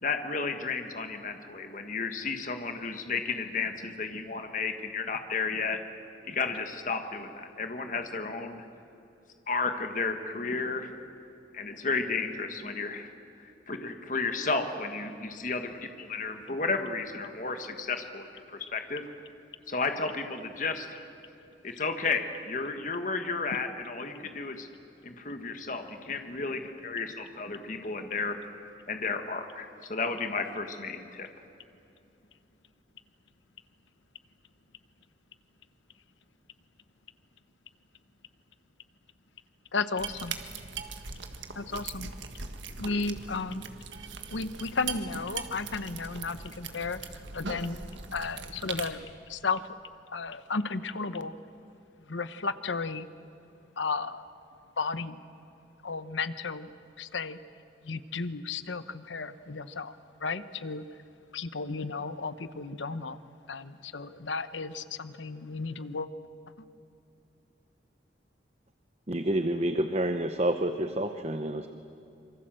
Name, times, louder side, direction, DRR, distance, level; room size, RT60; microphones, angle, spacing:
voice 1, 0.0-5.8 6.3-8.6 9.5-10.9 11.5-13.1 13.4-19.0 19.7-21.0 21.6-24.7 25.0-28.4 28.9-31.3, left 4 dB, 45° left, 6 dB, 1.6 m, -33 dB
voice 2, 39.7-40.4 41.5-42.1 42.8-43.7 44.3-47.8 48.1-49.6 50.1-51.3 52.1-53.1 53.8-54.2 54.8-55.2 55.8-56.7 57.0-57.4 57.8-59.9 60.2-60.8 61.3-63.2 63.5-66.1, left 4 dB, 90° left, 13 dB, 1.0 m, -34 dB
sound 1, 40.0-48.9, right 5 dB, 85° right, 1.7 m, -40 dB
voice 3, 69.1-71.7, right 1 dB, 35° right, 8 dB, 0.8 m, -28 dB
26.5 x 24.0 x 7.7 m, 2.7 s
head